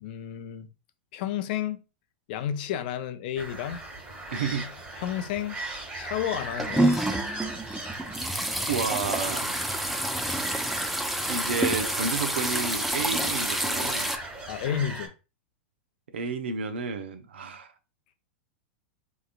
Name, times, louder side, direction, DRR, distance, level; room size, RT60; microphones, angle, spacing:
voice 1, 0.0-0.7 1.1-1.8 2.3-3.8 5.0-5.6 5.9-7.0 14.5-15.1, left 10 dB, 60° left, 0.5 m, -31 dB
sound 1, 3.4-15.1, right 2 dB, 20° right, 1.4 m, -39 dB
voice 2, 4.3-4.8 8.7-9.7 11.3-14.1 16.1-17.7, right 5 dB, 85° right, 0.7 m, -31 dB
sound 2, 6.3-14.2, right 1 dB, 5° right, 0.4 m, -28 dB
3.6 x 3.0 x 2.5 m
hypercardioid pair, 115°, 6 cm